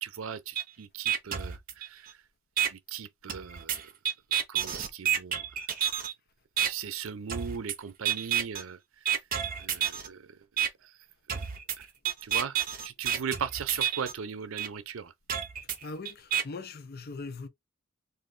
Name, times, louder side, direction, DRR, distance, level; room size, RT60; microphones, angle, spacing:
voice 1, 0.0-2.1 2.7-3.9 4.5-5.4 6.6-8.8 9.6-10.3 12.2-15.1, right 7 dB, 80° right, 0.5 m, -38 dB
sound 1, 0.6-0.7 1.1-2.1 2.6-2.7 3.3-6.1 6.6-6.7 7.3-7.8 8.1-8.6 9.1-10.1 10.6-10.7 11.3-14.1 14.6-14.7 15.3-16.4, right 9 dB, 45° right, 0.8 m, -29 dB
voice 2, 15.8-17.5, left 3 dB, 50° left, 0.6 m, -40 dB
3.9 x 2.6 x 3.2 m
head